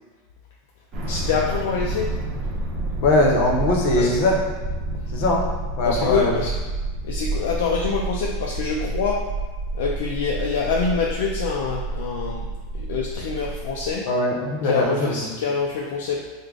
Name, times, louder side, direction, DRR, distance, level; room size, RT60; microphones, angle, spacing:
sound 1, 0.9-13.9, right 2 dB, 40° right, 0.7 m, -29 dB
voice 1, 1.1-2.2 4.0-4.1 5.9-6.5 7.0-9.3 9.7-14.1 14.6-16.3, left 5 dB, 75° left, -1 dB, 0.3 m, -26 dB
voice 2, 3.0-4.4 5.1-5.5 5.8-6.3 14.1-15.3, left 2 dB, 60° left, -1 dB, 0.7 m, -20 dB
3.3 x 2.1 x 3.7 m, 1.3 s
supercardioid pair, 125°, 0 cm